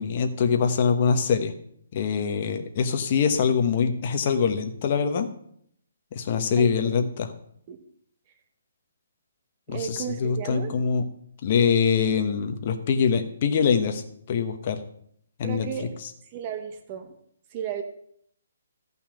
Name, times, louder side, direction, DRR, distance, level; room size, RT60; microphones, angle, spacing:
voice 1, 0.0-1.5 1.9-5.3 6.1-7.3 9.7-11.0 11.4-14.0 14.3-14.8 15.4-15.7, left 6 dB, 30° left, 6 dB, 1.2 m, -24 dB
voice 2, 6.6-6.9 7.7-7.8 9.7-10.7 15.4-15.9 16.3-17.1 17.5-17.8, right 8 dB, 25° right, 5 dB, 1.1 m, -33 dB
14.0 x 5.6 x 7.7 m, 0.68 s
hypercardioid pair, 175°, 0 cm